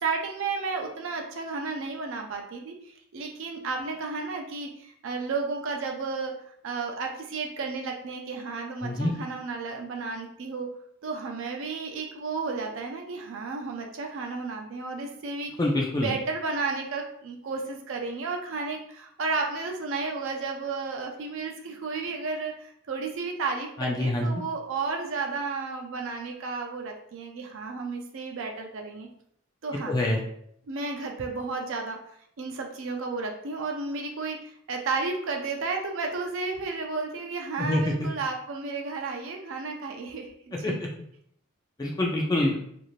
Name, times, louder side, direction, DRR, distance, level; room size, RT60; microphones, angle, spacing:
voice 1, 0.0-6.3 6.6-10.7 11.0-15.5 16.0-29.1 29.6-30.0 30.7-32.0 32.4-40.8, right 4 dB, 65° right, 2 dB, 0.4 m, -32 dB
voice 2, 15.6-16.1 23.8-24.3 29.9-30.2 37.6-38.1 40.6-40.9 41.8-42.6, left 1 dB, 20° left, -1 dB, 0.3 m, -26 dB
2.6 x 2.4 x 3.0 m, 0.69 s
head